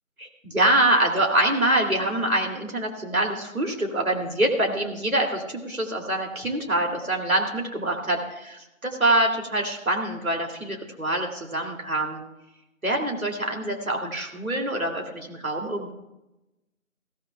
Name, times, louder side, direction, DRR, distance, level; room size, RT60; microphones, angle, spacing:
voice 1, 0.2-12.2 12.8-15.9, right 1 dB, 80° right, 1 dB, 2.6 m, -25 dB
17.0 x 12.5 x 2.3 m, 0.95 s
figure-of-eight pair, 180°, 42 cm